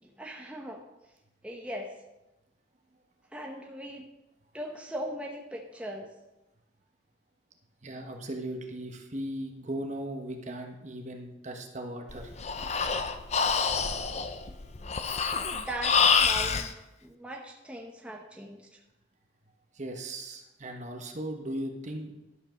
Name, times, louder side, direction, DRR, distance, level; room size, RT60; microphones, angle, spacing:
voice 1, 0.0-0.8 1.4-1.9 3.3-4.1 4.5-6.1 14.8-14.9 15.5-16.7 17.0-18.7, equal, 5° right, 0 dB, 0.9 m, -39 dB
voice 2, 7.8-12.3 19.7-22.1, right 1 dB, 40° right, 4 dB, 1.1 m, -37 dB
Breathing, 12.1-16.7, left 6 dB, 35° left, 0.6 m, -27 dB
11.5 x 5.4 x 6.2 m, 0.98 s
head